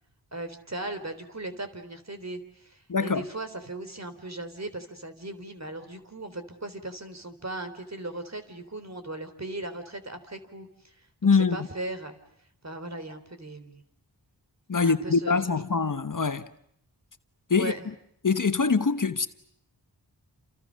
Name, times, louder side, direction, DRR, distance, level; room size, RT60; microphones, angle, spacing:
voice 1, 0.3-10.9 11.2-12.2 12.6-13.8 14.7-15.6 17.6-17.8, right 2 dB, 40° right, 3.7 m, -38 dB
voice 2, 2.9-3.3 11.2-11.7 14.7-16.5 17.5-17.7 18.2-19.3, left 5 dB, 50° left, 1.2 m, -24 dB
30.0 x 28.5 x 6.4 m
wide cardioid pair, 70°, 40 cm